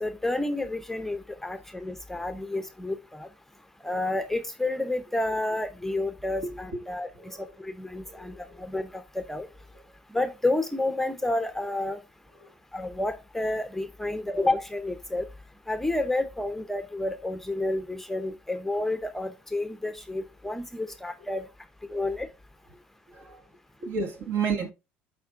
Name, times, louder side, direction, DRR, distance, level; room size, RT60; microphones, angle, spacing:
voice 1, 0.0-3.3 3.8-9.5 10.1-12.0 12.7-15.3 15.7-21.5 21.9-22.3, left 2 dB, 5° left, 0.6 m, -30 dB
voice 2, 6.4-6.8 7.2-7.5 8.0-8.5 12.4-12.5 20.8-20.9 21.9-22.1 23.1-23.4 23.8-24.7, right 5 dB, 60° right, 1.6 m, -33 dB
12.5 x 4.3 x 2.4 m
supercardioid pair, 95°, 5 cm